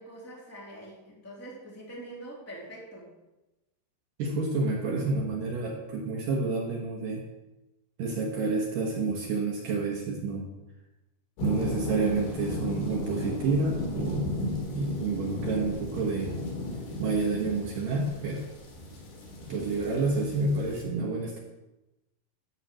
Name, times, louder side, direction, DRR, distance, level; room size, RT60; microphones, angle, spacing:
voice 1, 0.0-3.1, right 1 dB, 5° left, -4 dB, 1.9 m, -44 dB
voice 2, 4.2-7.2 8.0-10.5 11.4-14.3 14.7-16.4 17.0-18.5 19.5-21.4, right 3 dB, 65° right, -1 dB, 2.3 m, -29 dB
sound 1, 11.4-20.8, left 1 dB, 80° left, 5.2 m, -35 dB
12.0 x 5.8 x 7.5 m, 1.0 s
omnidirectional pair, 5.3 m